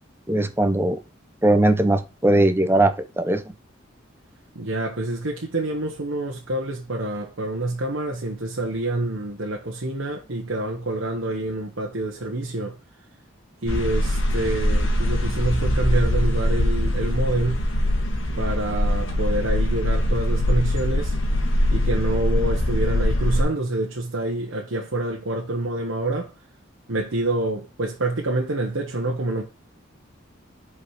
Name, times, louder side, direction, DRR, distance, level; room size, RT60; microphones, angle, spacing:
voice 1, 0.3-1.0 1.4-3.4, right 1 dB, 10° right, 0.7 m, -19 dB
voice 2, 4.5-12.7 13.6-17.6 18.4-21.2 21.7-26.3 26.9-29.4, right 2 dB, 80° right, 1.2 m, -27 dB
sound 1, 13.7-23.4, left 1 dB, 80° left, 1.9 m, -22 dB
5.7 x 4.9 x 4.9 m
head